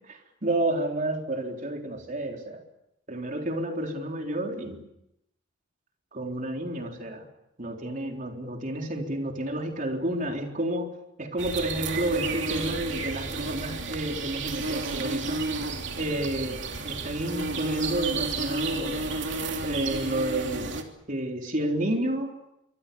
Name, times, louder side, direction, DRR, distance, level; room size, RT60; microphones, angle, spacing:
voice 1, 0.1-2.6 3.1-4.8 6.1-7.3 7.6-10.9 11.2-15.4 16.0-19.0 19.6-20.8 21.1-22.3, right 1 dB, 40° right, 2 dB, 3.9 m, -30 dB
sound 1, 11.4-20.8, right 3 dB, 65° right, 3.1 m, -31 dB
26.5 x 24.5 x 7.1 m, 0.86 s
head